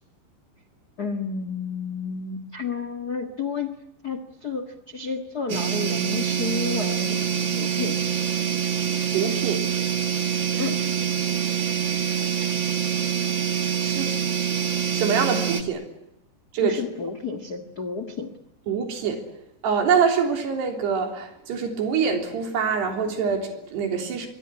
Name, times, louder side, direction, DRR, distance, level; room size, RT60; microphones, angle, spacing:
voice 1, 1.0-3.8 4.0-7.2 7.5-8.1 10.6-10.8 16.6-18.3, left 5 dB, 85° left, 0.8 m, -31 dB
sound 1, 5.5-15.6, right 8 dB, 55° right, 1.3 m, -25 dB
voice 2, 9.1-9.7 10.5-10.7 13.8-14.2 14.9-15.9 16.5-16.8 18.7-19.3 19.6-24.3, right 6 dB, 75° right, 5.6 m, -25 dB
24.0 x 24.0 x 9.9 m
omnidirectional pair, 4.8 m